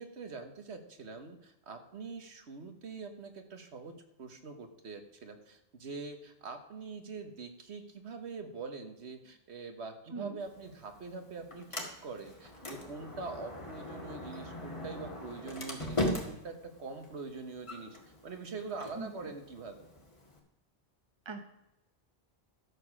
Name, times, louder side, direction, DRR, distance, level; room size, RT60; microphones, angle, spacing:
voice 1, 0.0-18.0 18.2-19.9, right 4 dB, 90° right, 6 dB, 1.5 m, -44 dB
Sliding door, 10.4-20.4, left 1 dB, 30° left, 1.8 m, -40 dB
voice 2, 19.0-19.3 21.2-21.4, right 4 dB, 25° right, 7 dB, 1.0 m, -41 dB
12.5 x 7.0 x 6.2 m, 0.89 s
omnidirectional pair, 1.1 m